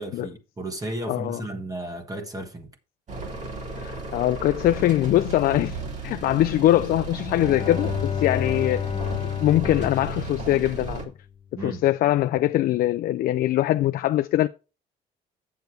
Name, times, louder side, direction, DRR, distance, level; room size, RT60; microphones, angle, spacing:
voice 1, 0.0-2.7 11.6-11.8, right 1 dB, 20° right, 1.5 m, -34 dB
voice 2, 1.1-1.4 3.8-5.8 6.0-8.9 9.4-11.0 11.6-14.5, left 14 dB, 60° left, 0.4 m, -22 dB
sound 1, 3.1-11.0, right 3 dB, 45° right, 2.6 m, -34 dB
Bowed string instrument, 7.1-11.1, left 8 dB, 35° left, 0.8 m, -31 dB
8.0 x 6.9 x 4.6 m
cardioid pair, 110°, 17 cm